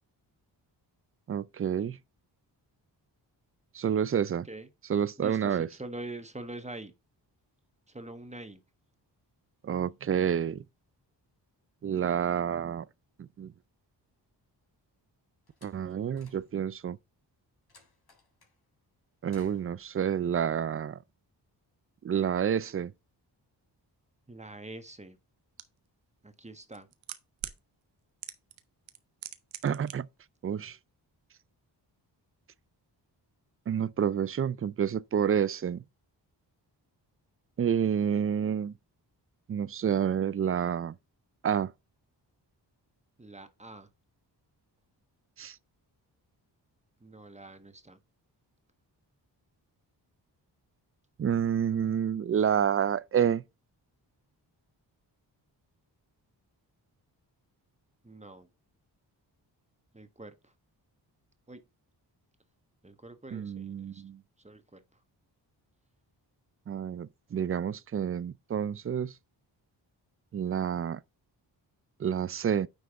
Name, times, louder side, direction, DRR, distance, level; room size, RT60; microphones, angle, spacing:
voice 1, 1.3-2.0 3.7-4.5 4.9-5.7 9.6-10.6 11.8-12.9 13.2-13.5 15.6-17.0 19.2-21.0 22.0-22.9 29.6-30.1 30.4-30.8 33.7-35.8 37.6-38.7 39.5-41.0 41.4-41.7 45.4-45.6 51.2-53.4 63.3-64.2 66.7-69.1 70.3-71.0 72.0-72.7, right 8 dB, 30° right, 0.4 m, -29 dB
voice 2, 5.2-6.9 7.9-8.6 24.3-25.2 26.2-26.9 43.2-43.9 47.0-48.0 58.0-58.5 59.9-60.5 61.5-61.6 62.8-64.0 64.4-65.0, right 2 dB, 15° right, 1.3 m, -44 dB
Slam, 15.5-16.8 17.7-18.6 19.3-19.9, left 5 dB, 55° left, 3.3 m, -59 dB
sound 1, 25.6-25.7 26.6-27.6 28.2-28.6 28.9-29.9 30.2-30.3, right 12 dB, 90° right, 0.8 m, -40 dB
9.5 x 3.4 x 3.6 m
cardioid pair, 60°, 45 cm